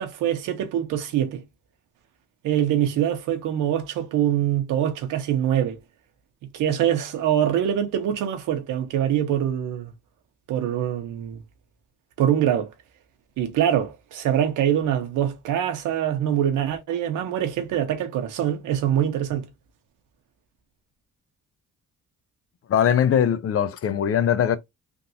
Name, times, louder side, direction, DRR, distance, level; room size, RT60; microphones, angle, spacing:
voice 1, 0.0-1.4 2.4-5.8 6.5-9.9 10.5-11.4 12.2-12.7 13.4-19.5, right 10 dB, 85° right, 1.1 m, -24 dB
voice 2, 22.7-24.6, left 9 dB, 50° left, 0.6 m, -21 dB
3.6 x 2.6 x 2.8 m
cardioid pair, 90°, 30 cm